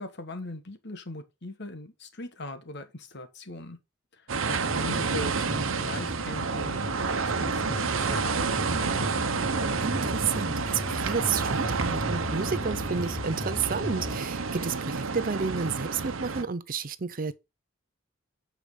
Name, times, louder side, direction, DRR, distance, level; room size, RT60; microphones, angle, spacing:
voice 1, 0.0-3.8 4.1-9.0, left 2 dB, 55° left, 1.6 m, -40 dB
sound 1, 4.3-16.4, right 4 dB, 85° right, 0.9 m, -29 dB
sound 2, 4.6-14.2, left 1 dB, 20° left, 1.3 m, -37 dB
voice 2, 9.8-17.3, right 5 dB, 45° right, 0.6 m, -31 dB
8.7 x 5.0 x 5.1 m
head